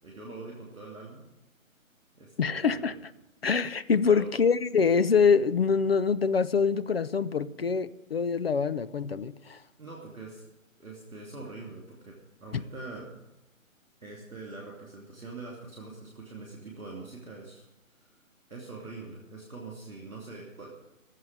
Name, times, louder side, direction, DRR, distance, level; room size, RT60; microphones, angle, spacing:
voice 1, 0.0-1.2 2.1-2.9 4.0-4.3 9.8-10.4 10.8-13.1 14.0-17.6 18.0-18.2 18.5-20.7, right 3 dB, ahead, 0.6 m, -43 dB
voice 2, 2.4-3.1 3.4-9.6, left 5 dB, 45° left, 0.6 m, -25 dB
14.0 x 7.6 x 9.5 m
hypercardioid pair, 160°, 41 cm